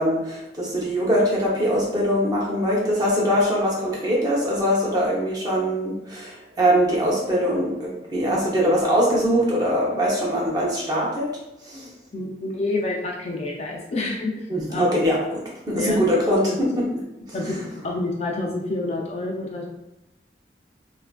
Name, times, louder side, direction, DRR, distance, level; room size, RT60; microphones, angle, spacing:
voice 1, 0.0-11.3 11.6-11.9 14.5-15.4 15.7-16.8 17.4-17.6, equal, 25° right, -5 dB, 0.7 m, -22 dB
voice 2, 12.1-14.9 15.7-16.0 16.2-16.6 17.3-19.7, left 2 dB, 35° left, -1 dB, 0.3 m, -28 dB
3.1 x 2.4 x 2.2 m, 0.91 s
head